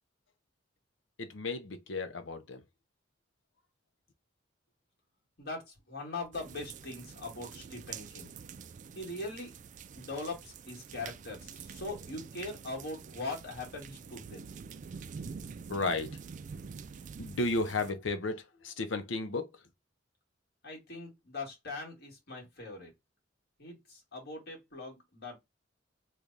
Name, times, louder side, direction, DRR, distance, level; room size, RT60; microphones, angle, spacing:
voice 1, 1.2-2.6 15.7-16.2 17.2-19.5, left 3 dB, 90° left, 0.7 m, -33 dB
voice 2, 5.4-8.4 8.9-9.5 9.9-14.5 20.6-22.9 23.6-25.4, left 2 dB, 60° left, 1.7 m, -41 dB
sound 1, 6.3-17.9, right 6 dB, 40° right, 0.3 m, -47 dB
3.3 x 2.2 x 3.8 m
head